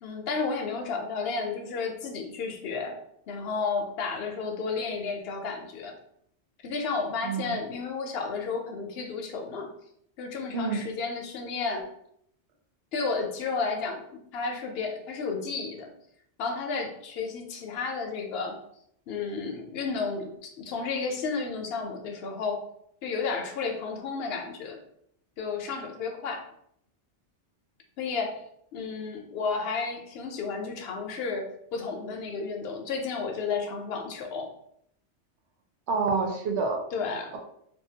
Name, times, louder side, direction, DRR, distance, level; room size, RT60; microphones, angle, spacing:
voice 1, 0.0-3.0 3.3-5.9 6.6-9.7 10.2-11.9 12.9-15.9 16.4-18.6 19.1-22.6 23.0-24.8 25.4-26.4 28.0-28.4 28.7-34.5 36.9-37.3, left 4 dB, 65° left, 3 dB, 0.7 m, -32 dB
voice 2, 7.2-7.6 10.5-10.9 35.9-36.8, right 4 dB, 75° right, 2 dB, 0.9 m, -28 dB
2.7 x 2.2 x 2.7 m, 0.72 s
omnidirectional pair, 1.2 m